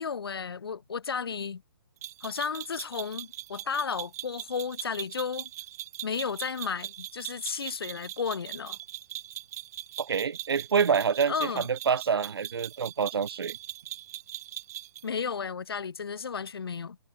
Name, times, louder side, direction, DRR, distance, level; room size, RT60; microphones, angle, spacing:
voice 1, 0.0-1.6 2.2-5.5 6.0-8.8 11.3-11.7 15.0-17.0, left 6 dB, 70° left, 0.9 m, -33 dB
sound 1, 2.0-15.1, right 13 dB, 40° right, 2.2 m, -41 dB
voice 2, 10.0-13.6, right 6 dB, 75° right, 0.5 m, -27 dB
figure-of-eight pair, 135°, 13 cm